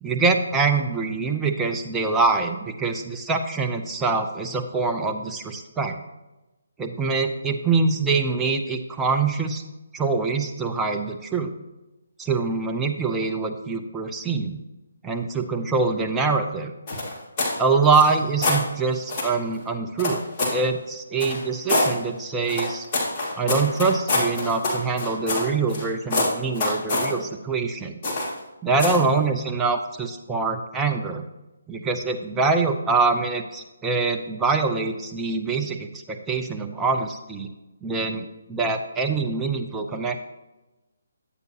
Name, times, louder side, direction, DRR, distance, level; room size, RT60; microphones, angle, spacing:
voice 1, 0.0-5.9 6.8-9.6 9.9-11.5 12.2-14.6 15.0-16.7 17.6-20.2 20.5-22.9 23.4-28.0 28.6-31.2 31.7-37.5 37.8-40.2, right 4 dB, 10° right, 2 dB, 0.6 m, -24 dB
sound 1, 16.9-17.6 17.9-18.6 19.1-19.3 20.0-20.6 21.2-21.9 22.5-25.8 26.1-27.1 28.0-28.4 28.8-29.1, left 2 dB, 25° left, 2.2 m, -25 dB
10.5 x 8.0 x 2.9 m, 1.0 s
figure-of-eight pair, 150°, 0 cm